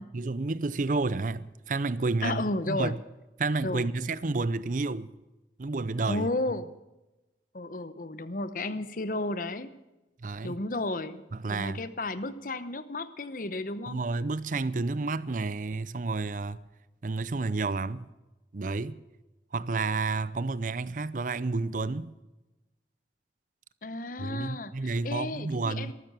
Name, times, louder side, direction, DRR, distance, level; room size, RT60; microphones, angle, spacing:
voice 1, 0.0-3.0 3.4-5.1 5.6-6.3 10.2-10.6 11.3-11.8 13.9-16.6 17.0-18.1 18.5-19.0 19.5-22.1 24.2-25.9, right 3 dB, 45° right, 0.6 m, -30 dB
voice 2, 2.2-2.9 3.6-3.9 6.1-6.7 7.5-9.7 10.4-11.2 11.5-14.0 23.8-25.9, left 2 dB, 50° left, 0.9 m, -33 dB
13.5 x 13.5 x 6.8 m
head